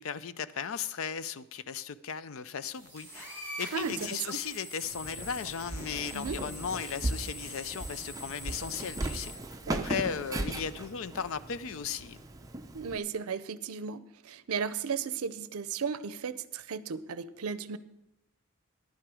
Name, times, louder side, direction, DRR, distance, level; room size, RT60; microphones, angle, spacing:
voice 1, 0.0-3.3 3.6-9.3 9.8-12.2, left 7 dB, 65° left, 15 dB, 0.4 m, -36 dB
sound 1, 2.6-9.3, equal, 15° left, 4.2 m, -44 dB
sound 2, 3.5-9.9, left 3 dB, 85° left, 2.6 m, -57 dB
voice 2, 3.7-4.4 6.1-6.4 9.7-10.0 12.7-17.8, right 6 dB, 80° right, 14 dB, 0.5 m, -35 dB
Walk footsteps, 4.8-13.0, right 2 dB, 15° right, 0.5 m, -38 dB
10.5 x 8.9 x 4.9 m, 0.89 s
head